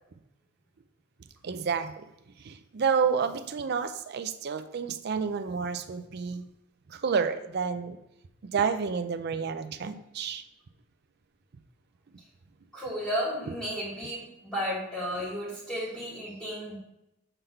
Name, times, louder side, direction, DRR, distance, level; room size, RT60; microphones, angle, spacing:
voice 1, 1.4-2.0 2.4-6.4 6.9-8.0 8.4-10.4, right 6 dB, 55° right, 10 dB, 0.4 m, -30 dB
voice 2, 12.7-16.8, equal, ahead, -12 dB, 1.7 m, -33 dB
6.8 x 3.9 x 4.4 m, 0.86 s
head